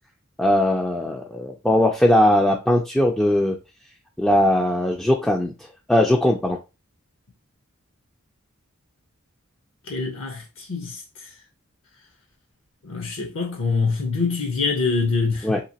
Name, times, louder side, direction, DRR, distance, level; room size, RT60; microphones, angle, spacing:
voice 1, 0.4-3.6 4.2-5.5 5.9-6.6 15.4-15.6, left 1 dB, 5° left, 0.3 m, -19 dB
voice 2, 9.9-10.4 10.7-11.0 12.8-15.6, left 4 dB, 65° left, 0.7 m, -24 dB
2.9 x 2.8 x 2.8 m
head